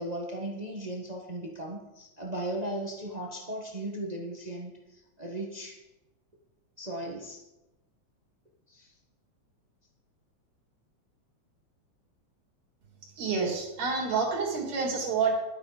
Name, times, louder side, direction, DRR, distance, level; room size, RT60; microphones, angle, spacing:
voice 1, 0.0-5.8 6.8-7.4 8.7-8.9, right 1 dB, 85° right, -1 dB, 0.3 m, -37 dB
voice 2, 13.2-15.3, right 5 dB, 70° right, -2 dB, 4.1 m, -28 dB
12.0 x 8.6 x 4.9 m, 0.98 s
omnidirectional pair, 3.4 m